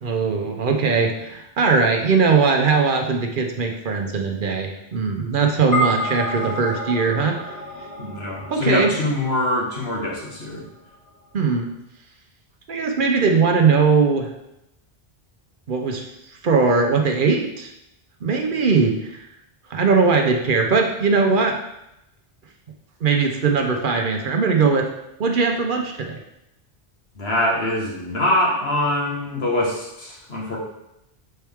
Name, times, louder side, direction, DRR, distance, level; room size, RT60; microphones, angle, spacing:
voice 1, 0.0-7.4 8.5-8.9 11.3-11.7 12.7-14.3 15.7-16.0 16.4-17.7 18.2-19.3 19.7-21.6 23.0-24.9 25.2-26.2, right 4 dB, 55° right, 3 dB, 0.9 m, -20 dB
sound 1, 5.7-10.3, right 1 dB, 35° left, 2.0 m, -29 dB
voice 2, 8.0-10.6 27.2-30.6, left 1 dB, 80° left, -3 dB, 1.8 m, -23 dB
6.8 x 4.5 x 3.5 m, 0.86 s
omnidirectional pair, 1.0 m